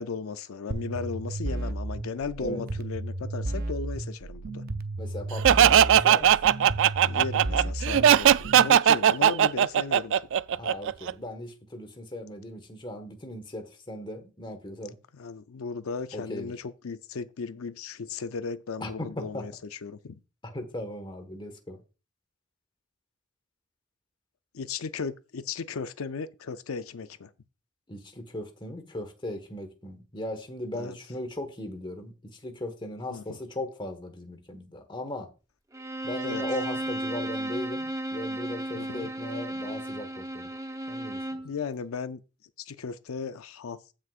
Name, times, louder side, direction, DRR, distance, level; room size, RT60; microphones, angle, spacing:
voice 1, 0.0-4.6 7.1-10.3 15.1-20.2 24.5-27.3 30.7-31.0 33.1-33.4 36.2-36.4 38.7-39.1 41.4-42.2 42.6-43.9, left 5 dB, 85° left, 0.5 m, -36 dB
sound 1, 0.7-8.7, right 2 dB, 50° right, 0.7 m, -33 dB
voice 2, 5.0-6.4 10.5-15.0 16.1-16.5 18.8-19.5 20.4-21.8 27.9-35.3 36.0-40.5 40.9-41.4, left 1 dB, 25° left, 1.4 m, -38 dB
Laughter, 5.4-11.1, right 10 dB, 65° right, 0.3 m, -19 dB
Bowed string instrument, 35.7-41.5, right 1 dB, 15° right, 0.8 m, -34 dB
15.0 x 6.3 x 2.5 m
head